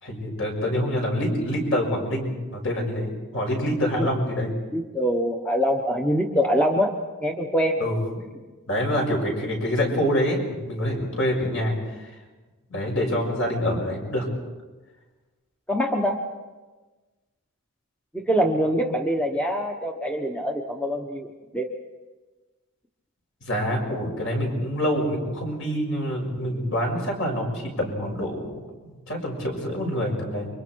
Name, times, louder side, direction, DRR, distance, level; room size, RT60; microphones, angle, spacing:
voice 1, 0.0-4.5 7.8-8.0 8.7-12.1 12.7-14.2 23.4-30.5, equal, 60° left, 0 dB, 6.7 m, -26 dB
voice 2, 4.7-6.9 7.2-7.8 15.7-16.2 18.1-21.3 21.5-21.7, equal, 5° left, 2 dB, 1.2 m, -24 dB
29.5 x 24.5 x 4.7 m, 1.2 s
head